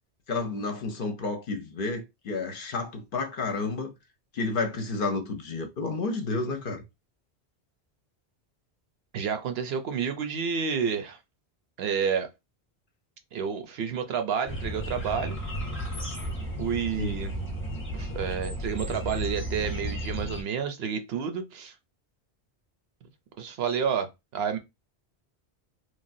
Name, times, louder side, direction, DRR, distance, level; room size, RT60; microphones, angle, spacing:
voice 1, 0.3-3.9 4.3-6.8 17.0-17.2, left 3 dB, 60° left, 0.7 m, -31 dB
voice 2, 9.1-11.2 11.8-12.3 13.3-15.4 16.6-17.3 17.9-21.7 23.4-24.6, right 7 dB, 70° right, 0.8 m, -30 dB
sound 1, 14.5-20.4, equal, 15° left, 0.7 m, -33 dB
3.2 x 2.2 x 2.5 m
omnidirectional pair, 1.1 m